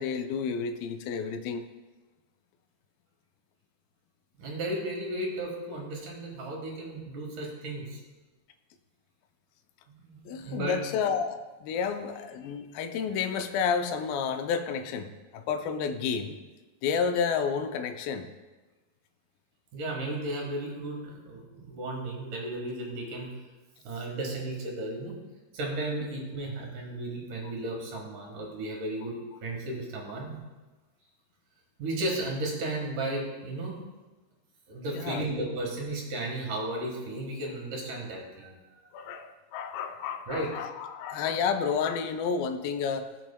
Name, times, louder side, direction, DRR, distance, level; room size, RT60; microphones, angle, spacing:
voice 1, 0.0-1.7 10.3-16.4 16.8-18.3 34.9-35.4 38.9-43.1, left 6 dB, 90° left, 8 dB, 2.4 m, -30 dB
voice 2, 4.4-8.0 9.9-10.8 19.7-23.3 23.8-25.2 25.5-29.1 29.4-30.4 31.8-33.8 34.7-38.8 40.3-40.5, right 1 dB, 65° right, -1 dB, 3.0 m, -34 dB
16.5 x 6.1 x 2.2 m, 1.2 s
omnidirectional pair, 4.0 m